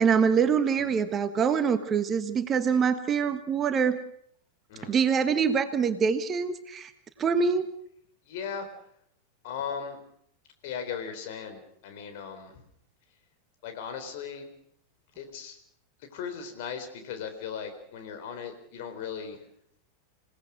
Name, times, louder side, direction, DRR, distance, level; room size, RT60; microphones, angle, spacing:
voice 1, 0.0-4.0 4.8-6.9 7.2-7.7, right 6 dB, 25° right, 11 dB, 1.4 m, -25 dB
voice 2, 8.3-8.7 9.4-10.0 10.6-12.5 13.6-14.5 15.2-15.6 16.1-19.4, left 7 dB, 50° left, 7 dB, 4.0 m, -37 dB
27.0 x 18.0 x 6.4 m, 0.68 s
figure-of-eight pair, 90°, 0 cm